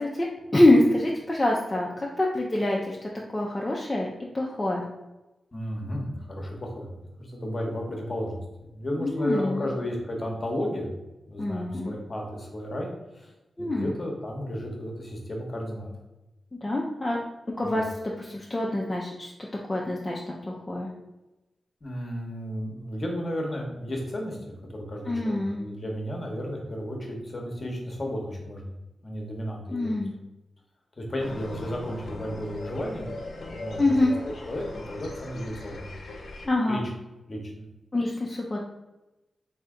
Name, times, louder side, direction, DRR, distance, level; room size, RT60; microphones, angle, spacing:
voice 1, 0.0-3.0 3.3-4.1 4.3-4.8 9.0-9.7 11.4-11.9 13.6-13.9 16.6-17.2 17.6-17.9 18.2-19.3 19.7-20.9 25.1-25.6 29.7-30.1 33.8-34.2 36.4-36.9 37.9-38.6, left 1 dB, 25° left, -3 dB, 0.5 m, -25 dB
voice 2, 5.5-6.9 7.2-8.4 8.7-10.9 11.3-13.3 13.6-15.9 17.6-17.9 21.8-28.6 29.0-30.0 31.0-33.1 33.4-34.1 34.5-35.9 36.7-36.8 37.3-37.7, equal, 45° left, 0 dB, 1.0 m, -33 dB
sound 1, 31.2-36.5, left 2 dB, 75° left, 0.6 m, -40 dB
3.2 x 2.8 x 3.6 m, 1.0 s
cardioid pair, 55°, 0 cm